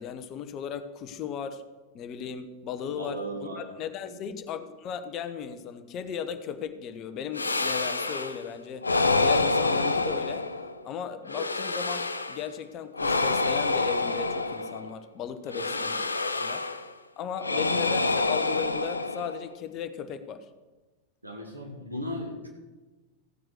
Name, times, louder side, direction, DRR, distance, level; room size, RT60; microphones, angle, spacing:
voice 1, 0.0-1.6 1.9-3.2 3.6-8.9 9.2-10.5 10.8-16.1 16.3-16.7 17.2-20.5, left 8 dB, 35° left, 10 dB, 1.0 m, -36 dB
voice 2, 2.9-3.7 4.0-4.2 15.5-15.8 17.4-17.7 21.2-22.5, equal, 85° right, 0 dB, 2.9 m, -37 dB
sound 1, 7.3-8.4 8.8-10.8 11.3-12.5 12.9-14.9 15.5-16.9 17.4-19.5, left 3 dB, 80° left, 0.7 m, -27 dB
15.5 x 7.8 x 6.5 m, 1.2 s
figure-of-eight pair, 90°, 0 cm